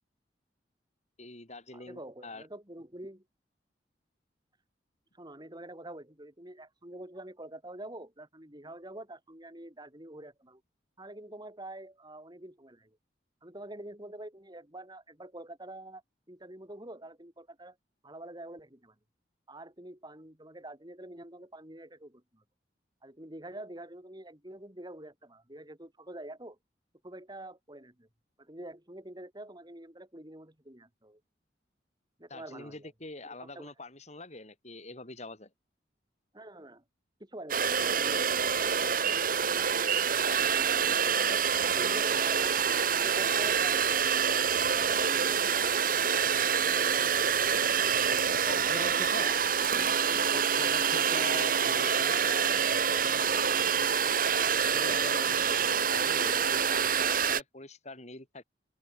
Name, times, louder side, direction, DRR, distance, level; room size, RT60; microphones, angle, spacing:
voice 1, 1.2-2.4 32.3-35.5 40.8-41.4 42.1-42.2 48.5-49.5 50.3-54.2 54.7-58.4, left 2 dB, 40° left, 7.0 m, -43 dB
voice 2, 1.7-3.2 5.1-10.6 11.0-13.0 13.4-16.0 16.3-17.8 18.0-18.9 19.5-22.4 23.0-26.6 27.0-28.1 28.4-31.2 32.2-32.9 33.2-33.7 36.3-36.8 37.2-38.9 41.6-42.6 43.0-44.0 44.3-47.7 48.6-49.4, right 1 dB, 25° right, 5.9 m, -46 dB
sound 1, 37.5-57.4, right 7 dB, 50° right, 2.2 m, -27 dB
head